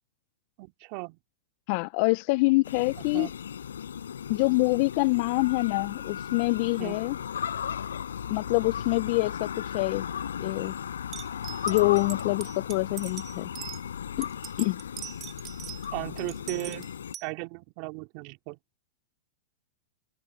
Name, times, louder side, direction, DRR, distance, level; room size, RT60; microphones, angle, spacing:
voice 1, 0.6-1.2 3.1-3.3 6.8-7.0 15.9-16.9 17.2-18.6, right 28 dB, 50° right, 3.1 m, -36 dB
voice 2, 1.7-3.3 4.3-7.2 8.3-10.0 10.4-10.8 11.7-13.5 14.2-14.3 14.6-14.8, left 25 dB, 50° left, 0.7 m, -25 dB
sound 1, 2.6-17.1, left 8 dB, 85° left, 6.6 m, -36 dB
sound 2, 11.1-13.8 14.2-15.9 16.2-17.3, right 11 dB, 30° right, 2.8 m, -41 dB
hypercardioid pair, 115°, 0 cm